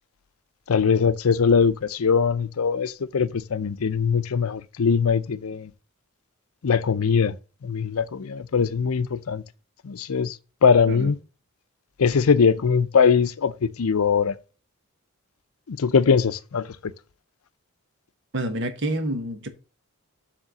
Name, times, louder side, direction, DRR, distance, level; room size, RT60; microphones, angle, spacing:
voice 1, 0.7-5.7 6.6-7.4 7.6-9.4 9.8-10.4 10.6-11.2 12.0-14.4 15.7-16.7, left 6 dB, 75° left, 0.5 m, -21 dB
voice 2, 18.3-19.5, right 1 dB, 55° right, 1.4 m, -28 dB
7.3 x 3.7 x 6.2 m
head